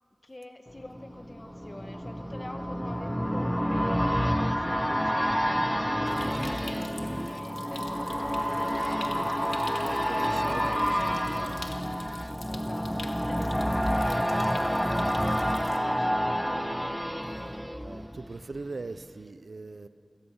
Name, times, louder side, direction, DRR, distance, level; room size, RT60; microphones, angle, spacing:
voice 1, 0.2-7.9 12.4-16.5, left 1 dB, 35° left, 1.6 m, -45 dB
sound 1, 0.8-18.6 18.9-19.0, equal, ahead, 0.5 m, -29 dB
Stream, 6.1-15.8, left 2 dB, 70° left, 1.6 m, -47 dB
voice 2, 9.9-11.7 17.2-19.9, right 3 dB, 80° right, 0.7 m, -42 dB
27.5 x 18.0 x 5.7 m
wide cardioid pair, 55°, 0 cm